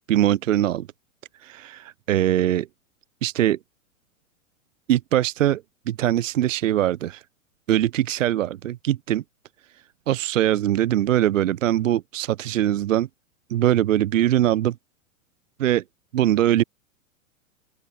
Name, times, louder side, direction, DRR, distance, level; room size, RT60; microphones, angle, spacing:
voice 1, 0.1-0.9 1.4-2.7 3.2-3.6 4.9-5.6 5.9-7.2 7.7-9.2 10.1-13.1 13.5-14.7 15.6-15.8 16.1-16.6, right 12 dB, 70° right, 0.5 m, -22 dB
open air
figure-of-eight pair, 100°, 41 cm